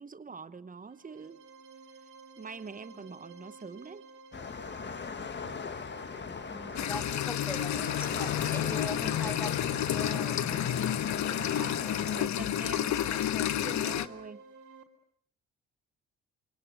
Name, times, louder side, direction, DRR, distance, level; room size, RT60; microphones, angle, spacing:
voice 1, 0.0-1.4 2.4-4.0 10.5-10.9 11.2-13.3 13.6-14.4, right 5 dB, 25° right, 1.2 m, -45 dB
sound 1, 0.8-14.8, right 4 dB, 75° right, 3.7 m, -52 dB
sound 2, 4.3-12.3, left 5 dB, 35° left, 1.8 m, -39 dB
voice 2, 6.2-10.4 12.8-14.1, left 1 dB, 5° left, 1.9 m, -43 dB
sound 3, 6.8-14.1, left 11 dB, 70° left, 1.2 m, -30 dB
28.5 x 24.5 x 7.9 m
cardioid pair, 90°, 30 cm